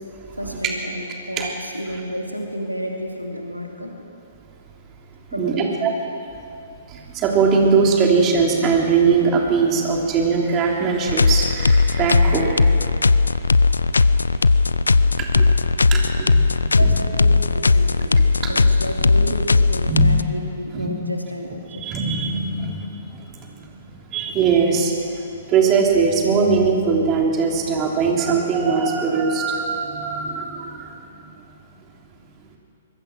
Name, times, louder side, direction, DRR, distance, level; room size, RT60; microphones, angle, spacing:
voice 1, 0.4-3.9 5.3-5.9 16.7-21.8, equal, 90° right, 1 dB, 2.7 m, -31 dB
voice 2, 5.4-5.9 6.9-12.6 15.2-15.5 15.9-16.4 16.8-16.9 18.4-18.7 19.9-20.1 20.7-20.9 21.7-22.9 24.1-24.9 25.5-30.9, right 5 dB, 25° right, 0 dB, 3.3 m, -20 dB
sound 1, 11.1-20.2, left 3 dB, 70° left, 0.6 m, -17 dB
24.5 x 21.5 x 6.3 m, 2.7 s
figure-of-eight pair, 115°, 0 cm